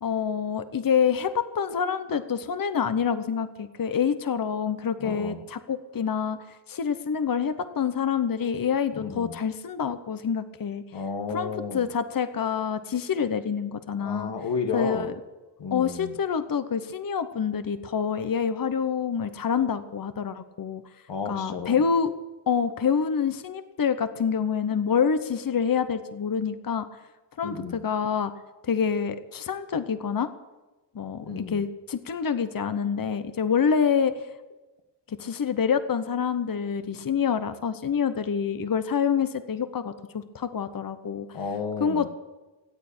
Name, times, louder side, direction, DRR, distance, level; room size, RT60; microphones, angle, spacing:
voice 1, 0.0-6.4 6.7-10.8 11.3-14.3 14.7-15.1 15.7-20.8 21.3-22.1 22.5-26.9 27.4-28.3 28.6-30.3 30.9-34.2 35.1-41.3 41.8-42.1, left 7 dB, 50° left, 0.9 m, -27 dB
voice 2, 5.0-5.4 9.0-9.3 10.9-11.9 14.0-15.1 15.6-16.1 21.1-21.8 27.4-27.8 31.2-31.6 41.3-42.1, left 5 dB, 85° left, 1.4 m, -32 dB
17.5 x 8.6 x 8.6 m
cardioid pair, 45°, 42 cm